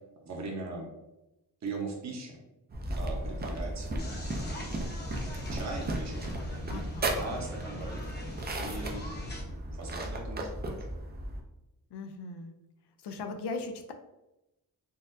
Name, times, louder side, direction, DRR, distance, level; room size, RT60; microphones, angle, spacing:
voice 1, 0.2-0.9 1.6-2.4 2.9-4.9 5.5-6.7 7.1-8.1 8.6-9.1 9.5-10.9, right 3 dB, 45° right, 0 dB, 0.8 m, -40 dB
sound 1, 2.7-11.4, right 1 dB, 25° right, 0.4 m, -35 dB
sound 2, 4.0-9.4, left 1 dB, 25° left, 0.8 m, -41 dB
voice 2, 6.7-7.2 11.9-12.5 13.0-13.9, left 3 dB, 80° left, 5 dB, 0.5 m, -38 dB
4.0 x 2.5 x 2.6 m, 0.95 s
wide cardioid pair, 125°, 39 cm